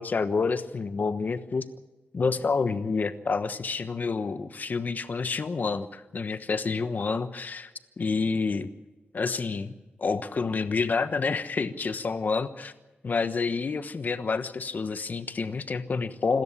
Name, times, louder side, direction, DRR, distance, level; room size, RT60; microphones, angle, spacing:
voice 1, 0.0-1.6 2.1-7.7 8.0-8.7 9.1-9.7 10.0-12.7 13.0-16.4, left 4 dB, 55° left, 11 dB, 1.2 m, -28 dB
27.0 x 13.5 x 8.4 m, 1.1 s
wide cardioid pair, 105°, 4 cm